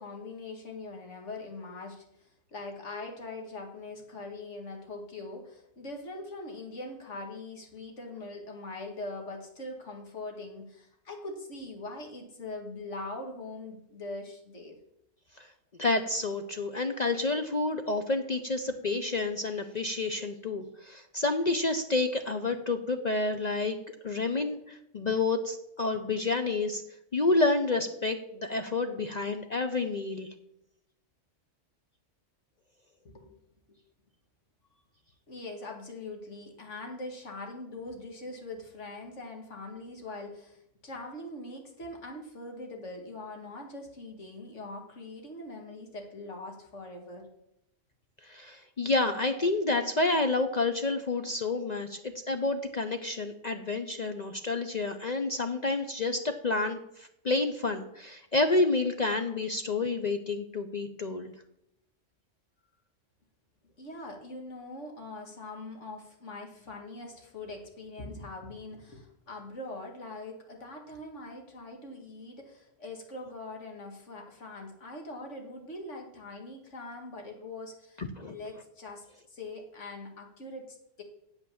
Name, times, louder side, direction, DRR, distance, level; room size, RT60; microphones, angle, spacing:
voice 1, 0.0-14.8 33.0-33.3 35.3-47.3 63.8-81.0, left 2 dB, 70° left, 2 dB, 2.3 m, -42 dB
voice 2, 15.8-23.8 24.0-26.8 27.1-30.3 48.2-61.3 78.0-78.4, left 3 dB, 40° left, 7 dB, 0.7 m, -29 dB
8.6 x 7.7 x 7.2 m, 0.79 s
omnidirectional pair, 1.3 m